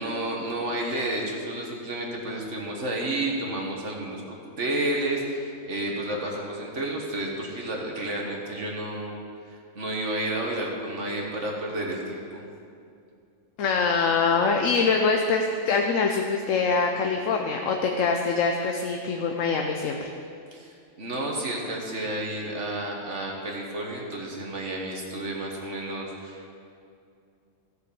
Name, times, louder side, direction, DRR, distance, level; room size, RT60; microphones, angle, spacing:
voice 1, 0.0-9.2 9.5-12.4 20.5-26.5, right 1 dB, 65° right, -1 dB, 1.8 m, -31 dB
voice 2, 13.6-20.0, left 4 dB, 80° left, 2 dB, 1.1 m, -24 dB
14.5 x 6.7 x 6.9 m, 2.4 s
omnidirectional pair, 1.3 m